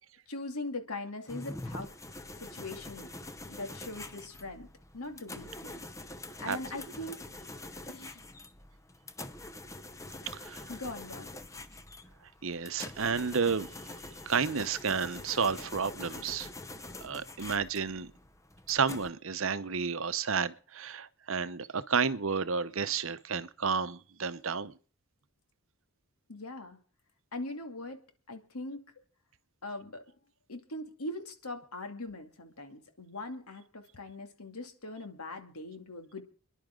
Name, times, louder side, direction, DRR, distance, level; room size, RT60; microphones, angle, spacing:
voice 1, 0.3-1.9 2.4-3.1 3.5-4.7 4.9-5.8 6.4-7.2 7.7-8.2 10.7-11.3 26.3-26.8 27.3-28.0 28.3-28.8 29.6-30.0 30.5-36.2, left 2 dB, 90° left, 2.5 m, -41 dB
sound 1, 1.3-19.1, left 2 dB, 15° left, 0.7 m, -45 dB
voice 2, 10.3-10.6 12.4-14.0 14.3-16.5 17.0-18.1 18.7-24.7, right 5 dB, 65° right, 0.8 m, -31 dB
29.5 x 11.0 x 3.8 m
head